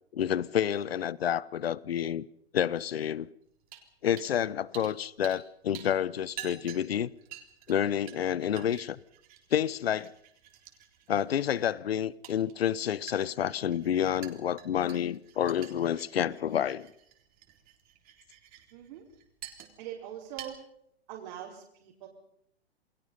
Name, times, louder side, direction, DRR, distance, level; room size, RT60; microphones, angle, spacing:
voice 1, 0.1-2.3 2.5-3.3 4.0-7.1 7.7-9.0 9.5-10.1 11.1-16.9, left 9 dB, 70° left, 1.1 m, -29 dB
sound 1, 3.7-3.9 4.2-4.4 4.7-5.5 5.7-20.0 20.3-20.5, right 11 dB, 25° right, 3.8 m, -49 dB
voice 2, 18.7-19.0 19.8-20.6 21.1-22.1, right 10 dB, 45° right, 5.0 m, -42 dB
29.0 x 20.5 x 5.6 m
hypercardioid pair, 125°, 32 cm